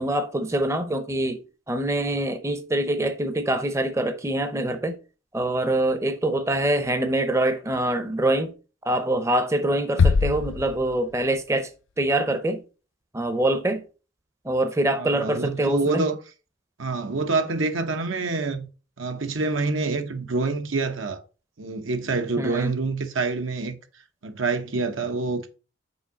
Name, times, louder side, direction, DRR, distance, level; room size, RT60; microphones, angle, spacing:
voice 1, 0.0-1.4 1.7-5.0 5.3-8.5 8.9-11.7 12.0-12.6 13.1-13.8 14.4-16.0 22.4-22.7, right 1 dB, 15° right, 0.6 m, -24 dB
sound 1, 10.0-11.6, left 4 dB, 70° left, 0.4 m, -23 dB
voice 2, 15.0-16.2 16.8-18.7 19.0-21.2 21.6-23.8 24.2-25.5, right 3 dB, 85° right, 1.0 m, -26 dB
5.6 x 4.6 x 4.9 m
head